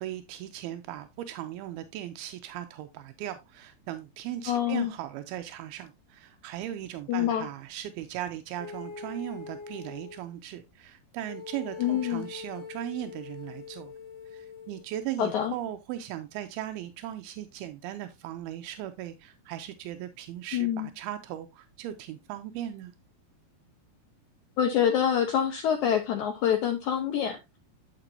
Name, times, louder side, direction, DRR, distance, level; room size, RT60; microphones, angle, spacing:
voice 1, 0.0-13.9 14.3-22.9, right 12 dB, 85° right, 2.5 m, -38 dB
voice 2, 4.5-4.9 7.1-7.5 11.8-12.3 15.2-15.5 20.5-20.9 24.6-27.6, left 9 dB, 80° left, 1.7 m, -26 dB
sound 1, 8.6-10.3 11.3-14.8, left 5 dB, 55° left, 2.0 m, -42 dB
8.9 x 6.8 x 2.6 m
omnidirectional pair, 4.3 m